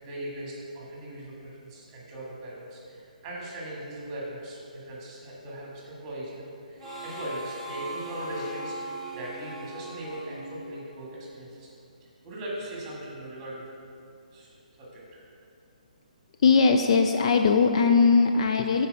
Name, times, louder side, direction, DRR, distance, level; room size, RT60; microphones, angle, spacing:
voice 1, 0.0-11.7 12.0-13.6 14.3-14.5 14.8-15.2, right 1 dB, 15° right, -4 dB, 1.8 m, -39 dB
Harmonica, 6.8-11.3, right 1 dB, ahead, 1.6 m, -39 dB
voice 2, 16.4-18.9, left 5 dB, 40° left, 5 dB, 0.4 m, -20 dB
7.1 x 4.7 x 5.3 m, 2.5 s
hypercardioid pair, 160°, 5 cm